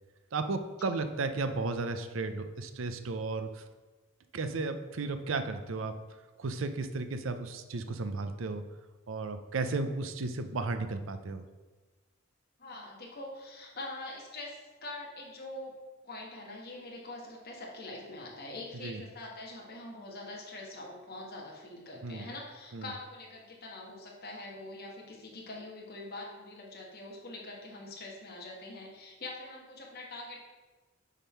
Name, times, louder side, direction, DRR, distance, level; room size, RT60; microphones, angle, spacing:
voice 1, 0.3-3.6 4.3-5.9 6.4-8.6 9.1-11.5 18.8-19.0 22.0-22.2 22.7-22.9, right 3 dB, 70° right, 9 dB, 0.6 m, -34 dB
voice 2, 12.6-15.7 16.0-30.4, left 2 dB, 50° left, -2 dB, 1.5 m, -44 dB
7.2 x 3.7 x 5.7 m, 1.3 s
head